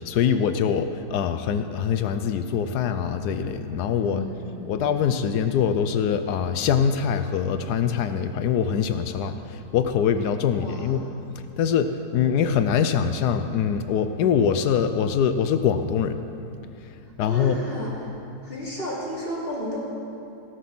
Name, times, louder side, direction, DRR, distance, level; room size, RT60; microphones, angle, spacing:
voice 1, 0.0-4.3 4.7-11.1 11.6-16.2 17.2-17.6, left 7 dB, 75° left, 9 dB, 1.2 m, -23 dB
voice 2, 4.0-4.7 10.5-11.1 17.0-18.1 18.4-19.8, equal, 35° left, -6 dB, 3.2 m, -33 dB
17.0 x 8.0 x 6.1 m, 2.8 s
omnidirectional pair, 1.8 m